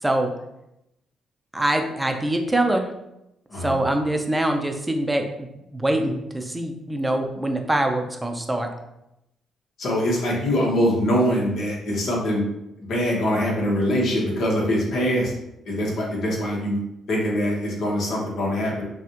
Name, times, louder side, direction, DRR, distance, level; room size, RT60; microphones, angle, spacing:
voice 1, 0.0-0.3 1.5-2.9 3.6-8.7, right 1 dB, 10° right, 4 dB, 0.6 m, -24 dB
voice 2, 9.8-12.4 12.8-15.3 15.6-16.8 17.1-18.8, equal, 60° left, -3 dB, 1.3 m, -23 dB
5.9 x 2.4 x 2.9 m, 0.86 s
cardioid pair, 90°, 0 cm